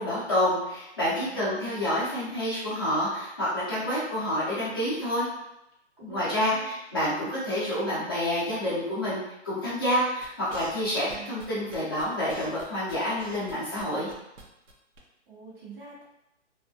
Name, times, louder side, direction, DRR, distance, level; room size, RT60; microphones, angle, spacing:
voice 1, 0.0-5.3 6.0-14.1, left 1 dB, 20° left, -10 dB, 0.6 m, -28 dB
voice 2, 1.3-1.8 6.0-6.7 11.0-11.3 15.3-16.0, right 4 dB, 45° right, -5 dB, 1.0 m, -45 dB
sound 1, 10.2-14.4 14.7-14.8 15.0-15.1, right 2 dB, 85° right, 0.8 m, -43 dB
2.6 x 2.5 x 2.2 m, 0.87 s
hypercardioid pair, 180°, 37 cm